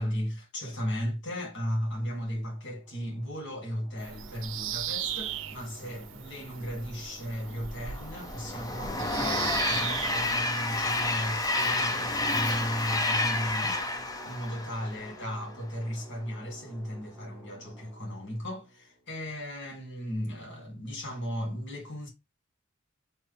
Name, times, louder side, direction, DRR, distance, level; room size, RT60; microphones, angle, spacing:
voice 1, 0.0-22.1, equal, 60° left, 1.7 m, -36 dB
sound 1, 1.8-20.0, right 1 dB, 5° right, 1.1 m, -53 dB
Bird vocalization bird call bird song, 4.0-10.4, right 10 dB, 75° right, 0.5 m, -37 dB
Train, 7.9-15.3, left 2 dB, 20° left, 0.5 m, -30 dB
4.0 x 3.2 x 3.3 m
head